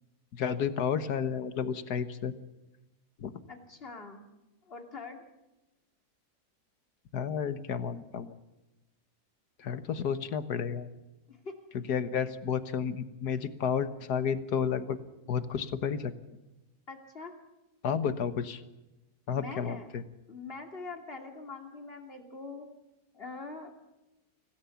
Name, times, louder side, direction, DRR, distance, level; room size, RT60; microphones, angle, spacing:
voice 1, 0.3-2.3 3.2-3.3 7.1-8.4 9.6-10.9 11.7-15.0 15.3-16.1 17.8-18.6 19.3-20.0, left 7 dB, 90° left, 11 dB, 1.8 m, -31 dB
voice 2, 3.5-4.2 4.6-5.2 11.3-11.6 16.9-17.3 19.3-19.9 20.3-22.7 23.1-23.7, left 3 dB, 40° left, 3 dB, 2.9 m, -43 dB
26.0 x 17.0 x 7.1 m, 1.0 s
omnidirectional pair, 1.6 m